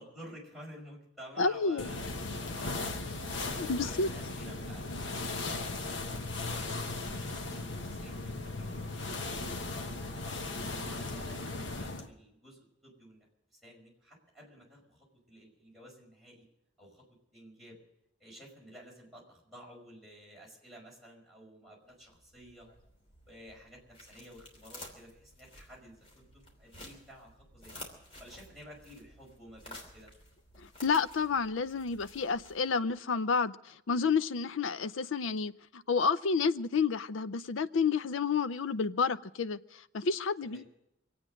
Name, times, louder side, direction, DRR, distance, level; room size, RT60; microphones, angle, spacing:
voice 1, 0.0-4.8 5.2-9.5 9.8-10.6 10.9-16.5 16.8-17.0 17.3-17.8 18.2-22.7 23.3-27.9 28.2-30.1 40.5-40.7, equal, ahead, 5.3 m, -53 dB
voice 2, 1.4-1.9 3.6-4.1 30.6-40.6, left 5 dB, 90° left, 0.5 m, -30 dB
sound 1, 1.8-12.1, left 2 dB, 70° left, 1.2 m, -37 dB
sound 2, 21.9-33.0, left 1 dB, 30° left, 3.1 m, -53 dB
24.5 x 8.7 x 6.4 m
head